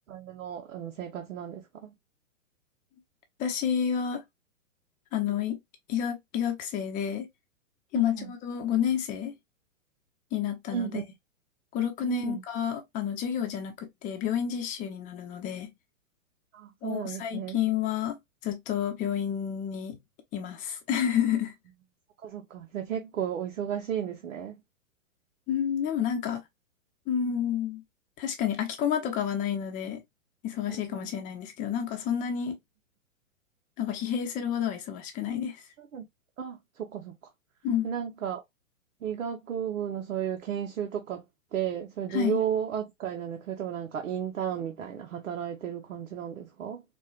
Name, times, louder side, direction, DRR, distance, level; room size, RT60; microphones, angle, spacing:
voice 1, 0.1-1.9 7.9-8.3 10.7-11.0 12.0-12.4 16.5-17.6 22.2-24.6 30.7-31.0 35.8-36.1 36.4-37.1 37.8-38.4 39.0-41.2 41.5-46.8, right 9 dB, 80° right, 0.9 m, -33 dB
voice 2, 3.4-4.2 5.1-5.6 5.9-7.3 7.9-9.3 10.3-11.0 11.7-15.7 16.8-18.2 18.4-20.0 20.3-21.5 25.5-26.4 27.1-27.8 28.2-30.0 30.4-32.6 33.8-35.6 37.6-37.9 42.1-42.4, left 9 dB, 20° left, 0.6 m, -30 dB
4.3 x 2.2 x 2.3 m
hypercardioid pair, 135°, 40 cm